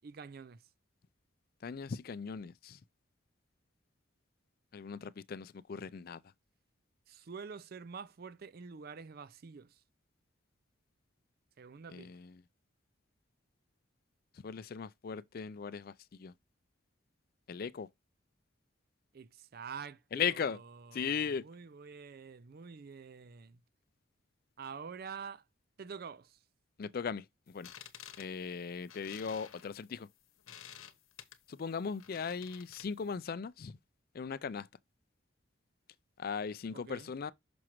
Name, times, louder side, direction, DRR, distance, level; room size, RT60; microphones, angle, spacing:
voice 1, 0.0-0.6 7.1-9.8 11.6-12.1 19.1-23.6 24.6-25.4 25.8-26.4 36.7-37.1, right 6 dB, 45° right, 0.4 m, -47 dB
voice 2, 1.6-2.8 4.7-6.2 11.9-12.3 14.4-16.3 17.5-17.9 20.1-20.6 20.9-21.4 26.8-27.2 27.5-27.7 28.2-30.1 31.5-33.8 34.1-34.7 36.2-37.3, left 6 dB, 45° left, 0.4 m, -38 dB
sound 1, 27.5-33.1, left 9 dB, 85° left, 0.9 m, -53 dB
6.1 x 6.0 x 3.0 m
head